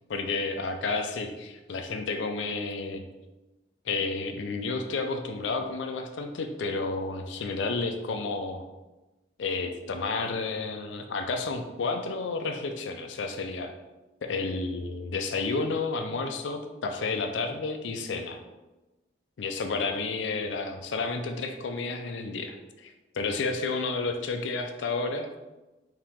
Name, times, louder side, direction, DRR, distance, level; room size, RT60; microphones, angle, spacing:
voice 1, 0.1-3.0 3.9-8.6 9.4-13.7 14.2-18.4 19.4-25.3, left 3 dB, 85° left, 6 dB, 0.4 m, -31 dB
4.7 x 2.8 x 3.6 m, 1.1 s
head